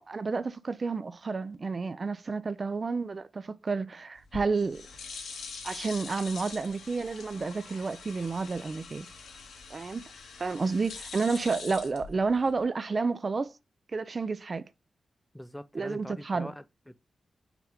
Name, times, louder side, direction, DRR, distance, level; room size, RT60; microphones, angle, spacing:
voice 1, 0.0-4.9 5.6-9.1 9.7-10.1 10.4-13.5 13.9-14.6 15.7-16.5, right 4 dB, 50° right, 0.6 m, -30 dB
sound 1, 4.2-12.6, left 5 dB, 85° left, 2.2 m, -44 dB
voice 2, 15.3-17.0, left 1 dB, 10° left, 0.6 m, -43 dB
6.0 x 5.8 x 3.6 m
cardioid pair, 55°, 0 cm